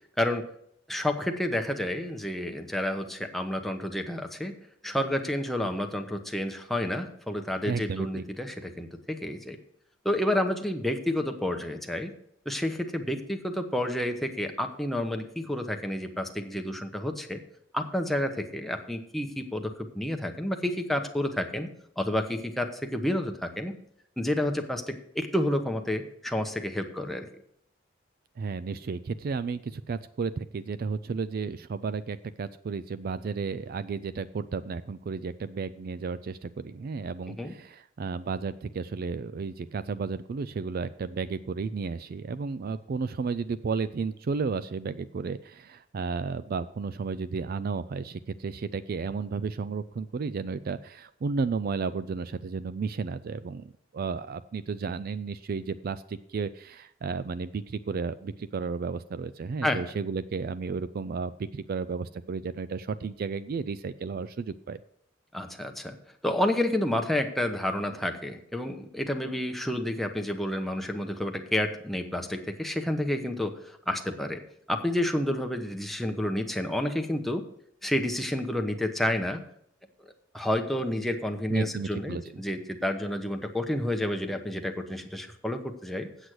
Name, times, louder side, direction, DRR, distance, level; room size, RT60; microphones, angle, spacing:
voice 1, 0.9-4.5 4.8-9.6 10.0-12.1 12.4-17.4 17.7-21.7 22.0-23.7 24.2-27.3 37.3-37.5 59.6-59.8 65.3-65.9 66.2-74.4 74.7-77.4 77.8-79.4 80.3-86.1, left 1 dB, ahead, 4 dB, 0.9 m, -30 dB
voice 2, 7.7-8.2 28.4-64.8 81.5-82.2, right 5 dB, 50° right, 14 dB, 0.3 m, -33 dB
8.2 x 7.9 x 6.1 m, 0.70 s
head